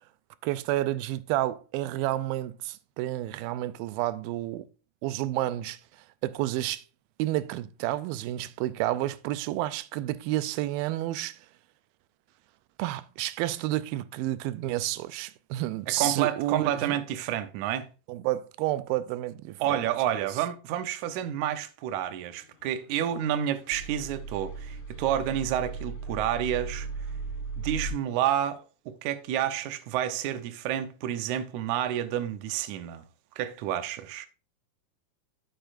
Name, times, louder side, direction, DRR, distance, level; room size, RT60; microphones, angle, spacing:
voice 1, 0.4-4.7 5.0-5.8 6.2-6.8 7.2-11.4 12.8-16.9 18.1-19.8 20.1-20.3, right 15 dB, 90° right, 2.4 m, -30 dB
voice 2, 15.9-17.9 19.6-26.9 27.6-33.1 33.4-34.3, right 10 dB, 70° right, 1.9 m, -29 dB
sound 1, 22.6-27.9, right 4 dB, 60° left, 2.6 m, -37 dB
12.0 x 6.8 x 2.5 m
omnidirectional pair, 4.1 m